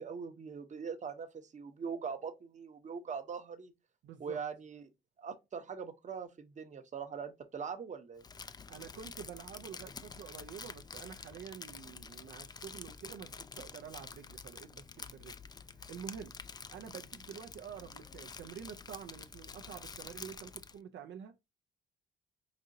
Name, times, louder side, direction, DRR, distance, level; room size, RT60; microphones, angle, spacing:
voice 1, 0.0-3.7 4.2-4.8 5.2-8.2, right 6 dB, 35° right, 0.8 m, -42 dB
voice 2, 4.0-4.4 8.7-15.4 15.9-16.3 16.7-21.3, right 8 dB, 65° right, 0.5 m, -48 dB
Crumpling crinkling, 8.2-20.8, left 5 dB, 20° left, 0.3 m, -48 dB
5.0 x 2.7 x 2.6 m
cardioid pair, 90°, 20 cm